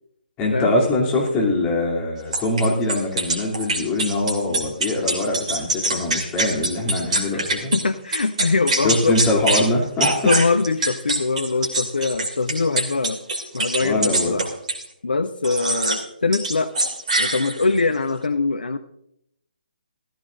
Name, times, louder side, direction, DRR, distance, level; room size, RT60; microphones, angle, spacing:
voice 1, 0.4-7.7 8.8-10.2 13.8-14.4, left 2 dB, 20° left, -2 dB, 2.8 m, -23 dB
sound 1, 2.3-7.8 8.1-9.7 10.0-14.9 15.4-16.0 16.3-17.8, right 2 dB, 45° right, 2.8 m, -24 dB
voice 2, 7.7-9.2 10.2-13.2 13.5-14.5 15.0-16.7 17.2-18.8, left 3 dB, 70° left, 11 dB, 0.7 m, -22 dB
16.0 x 14.5 x 2.5 m, 0.75 s
figure-of-eight pair, 140°, 5 cm